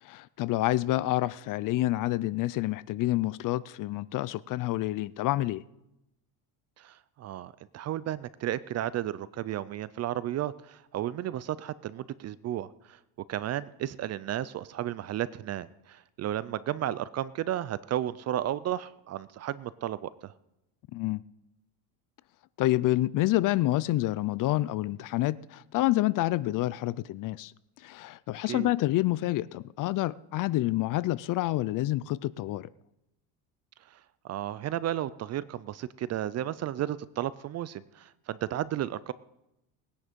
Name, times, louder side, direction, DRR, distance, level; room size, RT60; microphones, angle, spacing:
voice 1, 0.0-5.6 20.9-21.2 22.6-32.7, left 16 dB, 45° left, 0.4 m, -28 dB
voice 2, 6.8-13.0 13.3-20.3 28.5-28.7 33.9-34.0 34.2-39.1, right 12 dB, 35° right, 0.4 m, -33 dB
19.5 x 10.0 x 5.2 m
cardioid pair, 130°, 46 cm